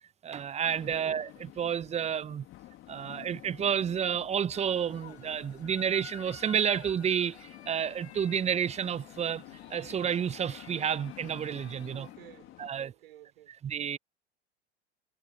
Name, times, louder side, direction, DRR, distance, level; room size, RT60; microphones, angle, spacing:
voice 1, 0.2-2.4 2.9-9.4 9.7-12.1 12.6-12.9 13.6-14.0, right 8 dB, 20° right, 1.1 m, -30 dB
sound 1, 0.6-12.7, left 15 dB, 40° left, 3.2 m, -51 dB
sound 2, 4.5-12.2, left 7 dB, 75° left, 1.2 m, -51 dB
voice 2, 11.9-14.0, right 14 dB, 60° right, 3.9 m, -54 dB
figure-of-eight pair, 85°, 32 cm